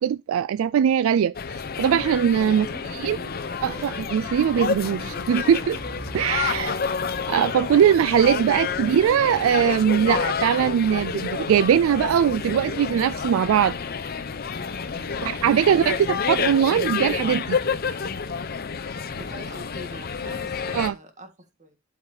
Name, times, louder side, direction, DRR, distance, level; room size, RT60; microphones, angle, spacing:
voice 1, 0.0-1.3 1.8-2.7 3.0-3.2 3.6-5.8 6.1-6.8 7.3-13.8 15.2-17.6 20.7-20.9, right 8 dB, 80° right, 0.3 m, -21 dB
sound 1, 1.3-20.9, left 5 dB, 50° left, 0.7 m, -29 dB
sound 2, 2.4-8.6 8.9-10.4 11.4-11.8 12.0-12.4 13.9-14.2 14.5-14.8 16.4-16.5, right 1 dB, 10° right, 3.3 m, -44 dB
voice 2, 2.4-3.3 6.2-6.9 14.9-15.6 19.1-21.8, equal, 35° right, 1.6 m, -44 dB
12.0 x 4.7 x 2.8 m
head